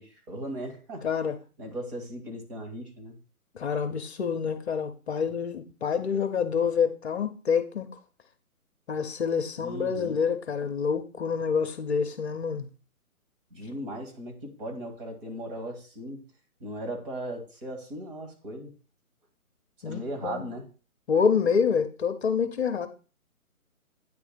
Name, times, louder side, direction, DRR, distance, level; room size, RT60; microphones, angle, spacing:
voice 1, 0.0-1.1 1.6-3.2 9.6-10.2 10.6-10.7 13.5-16.2 16.6-18.7 19.8-20.7, right 1 dB, 40° right, 2.1 m, -37 dB
voice 2, 1.0-1.4 3.5-7.9 8.9-12.7 19.8-20.5 21.1-22.9, left 6 dB, 50° left, 0.8 m, -27 dB
9.3 x 3.5 x 5.0 m
hypercardioid pair, 155°, 43 cm